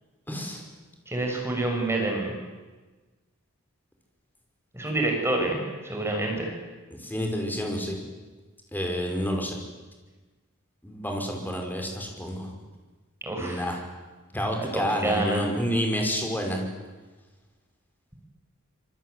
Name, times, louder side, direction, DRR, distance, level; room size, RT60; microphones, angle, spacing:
voice 1, 0.3-0.6 6.9-8.0 8.7-9.6 10.8-12.5 13.4-13.8 14.3-16.6, equal, 10° left, 2 dB, 5.6 m, -29 dB
voice 2, 1.1-2.3 4.7-6.5 13.2-13.7 14.6-15.4, right 2 dB, 10° right, 1 dB, 6.6 m, -27 dB
26.0 x 24.0 x 9.6 m, 1.3 s
head